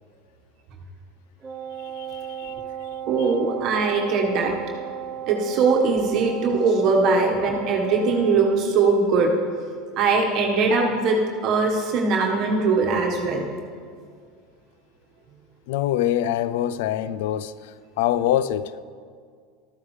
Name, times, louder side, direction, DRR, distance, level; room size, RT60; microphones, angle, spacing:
Wind instrument woodwind instrument, 1.4-8.7, right 9 dB, 25° right, 0.6 m, -35 dB
voice 1, 1.8-2.5 3.2-3.3 15.7-18.7, left 12 dB, 75° left, 0.3 m, -25 dB
voice 2, 3.1-4.5 5.2-9.3 10.0-13.6, right 4 dB, 50° right, 1.3 m, -21 dB
13.0 x 9.6 x 3.2 m
supercardioid pair, 110°, 0 cm